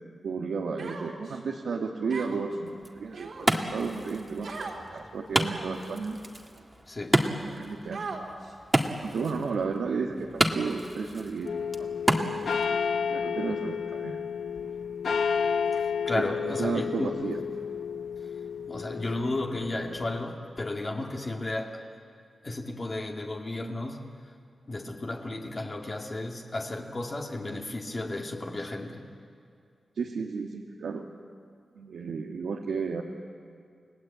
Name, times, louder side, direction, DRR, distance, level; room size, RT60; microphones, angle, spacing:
voice 1, 0.2-6.2 7.4-8.1 9.0-11.9 13.1-14.2 16.2-17.4 30.0-31.1 31.7-33.0, right 5 dB, 90° right, 0 dB, 1.6 m, -33 dB
Human voice, 0.8-1.4 2.1-2.5 3.1-3.7 4.4-4.8 5.4-5.9 6.6-6.7 7.9-8.5, right 4 dB, 70° right, 3.6 m, -39 dB
Wood, 2.7-12.7, right 1 dB, 15° right, 2.0 m, -31 dB
voice 2, 6.9-7.2 15.8-17.1 18.7-21.8 22.4-24.1 24.7-29.1, left 2 dB, 40° left, 0 dB, 2.4 m, -33 dB
sound 1, 11.4-20.2, left 6 dB, 75° left, 1.0 m, -31 dB
30.0 x 19.0 x 8.6 m, 2.3 s
cardioid pair, 75°, 0 cm